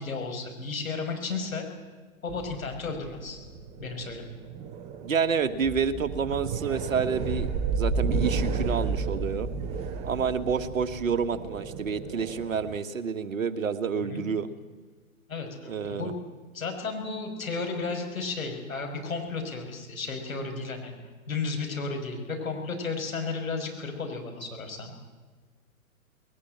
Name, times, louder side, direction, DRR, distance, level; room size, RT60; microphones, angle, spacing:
voice 1, 0.0-1.7 2.2-3.4 3.8-4.3 14.0-14.2 15.3-16.1 16.5-20.9 21.3-24.9, left 4 dB, 70° left, 3 dB, 5.5 m, -33 dB
sound 1, 2.3-12.8, right 4 dB, 15° right, 0.8 m, -32 dB
voice 2, 5.0-9.5 10.0-14.5 15.6-16.1, right 6 dB, 65° right, 9 dB, 1.6 m, -29 dB
20.5 x 18.5 x 8.8 m, 1.4 s
figure-of-eight pair, 120°, 43 cm